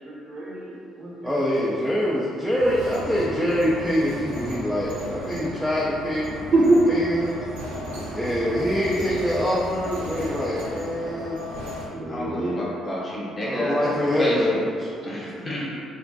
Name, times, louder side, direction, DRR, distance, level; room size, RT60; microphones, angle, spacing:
voice 1, 0.0-1.4 5.2-5.6 6.5-6.8 8.1-8.2 11.9-12.6 13.4-13.6 15.2-15.3, right 2 dB, 50° right, -7 dB, 0.8 m, -25 dB
voice 2, 1.2-6.4 6.9-7.4 8.2-11.4 13.4-15.3, equal, ahead, -7 dB, 0.4 m, -25 dB
sound 1, 2.6-11.8, equal, 80° right, 0.5 m, -35 dB
voice 3, 12.1-14.5 15.0-15.7, equal, 25° left, -7 dB, 0.8 m, -30 dB
2.5 x 2.1 x 2.5 m, 2.4 s
hypercardioid pair, 50°, 0 cm